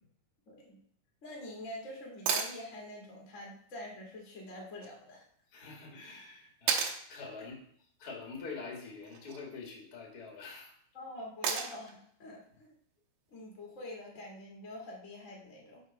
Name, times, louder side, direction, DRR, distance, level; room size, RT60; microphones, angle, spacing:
voice 1, 0.5-0.8 1.2-5.2 10.9-12.7 13.3-15.8, left 1 dB, 70° left, -2 dB, 0.7 m, -45 dB
sound 1, 2.3-2.6 4.8-4.9 6.7-7.0 9.0-9.4 11.4-11.9 14.0-14.1, right 6 dB, 70° right, 2.5 m, -32 dB
voice 2, 5.5-7.5 8.0-10.7, left 4 dB, 50° left, -1 dB, 1.0 m, -45 dB
6.7 x 5.5 x 5.1 m, 0.63 s
omnidirectional pair, 5.0 m